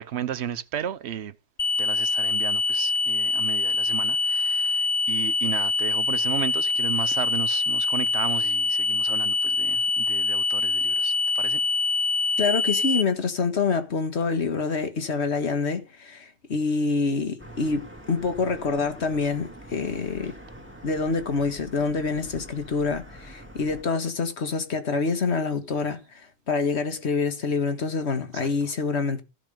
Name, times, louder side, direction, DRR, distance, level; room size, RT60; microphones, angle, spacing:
voice 1, 0.0-1.3 1.8-11.6 28.3-28.7, right 10 dB, 70° right, 1.1 m, -34 dB
sound 1, 1.6-13.0, left 3 dB, 30° left, 1.0 m, -24 dB
voice 2, 12.4-20.3 20.8-26.0 26.5-29.2, left 4 dB, 75° left, 1.8 m, -26 dB
sound 2, 17.4-23.8, equal, 10° right, 2.2 m, -45 dB
15.5 x 6.1 x 6.7 m
omnidirectional pair, 1.2 m